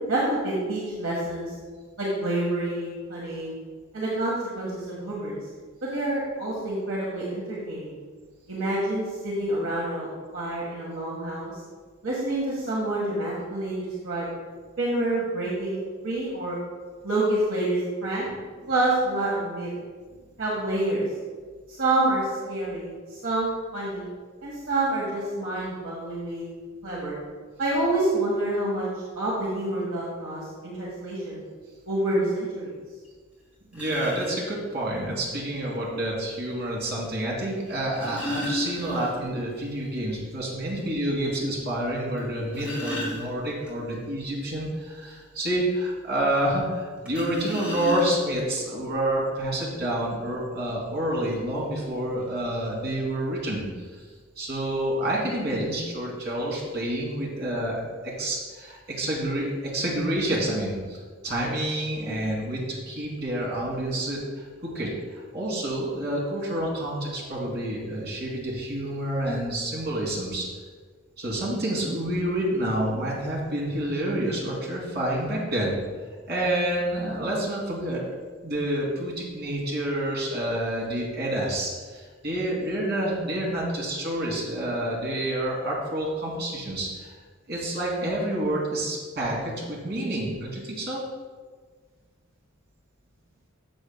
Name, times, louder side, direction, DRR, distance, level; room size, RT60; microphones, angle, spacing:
voice 1, 0.1-1.5 2.0-3.6 3.9-5.4 5.8-7.9 8.5-11.5 12.0-14.3 14.8-16.6 17.0-18.2 18.7-19.7 20.4-21.0 21.7-24.0 24.4-26.5 26.8-27.1 27.6-28.9 29.1-31.4 31.8-32.7, right 1 dB, 70° right, -5 dB, 1.6 m, -27 dB
sound 1, 33.0-33.1 33.7-34.4 35.8-35.9 37.7-39.4 39.7-39.8 40.2-40.3 40.9-41.0 42.2-43.7 47.1-48.4 49.3-49.4 49.7-50.0, left 1 dB, 5° right, 2.2 m, -33 dB
voice 2, 33.7-54.0 54.4-57.8 58.2-70.4 71.2-75.8 76.3-78.0 78.4-87.1 87.5-91.0, right 1 dB, 55° right, -4 dB, 2.6 m, -28 dB
13.0 x 7.2 x 2.2 m, 1.5 s
head